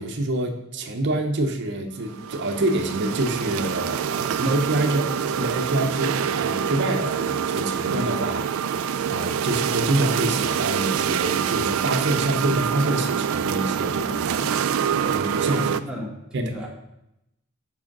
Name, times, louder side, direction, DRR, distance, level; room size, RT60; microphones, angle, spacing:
voice 1, 0.0-14.6 15.1-15.7 16.3-16.5, right 1 dB, 60° right, 5 dB, 0.8 m, -26 dB
sound 1, 2.0-15.8, right 8 dB, 80° right, 0.4 m, -26 dB
voice 2, 15.5-16.7, equal, 5° right, -3 dB, 1.6 m, -34 dB
5.6 x 4.8 x 5.9 m, 0.84 s
head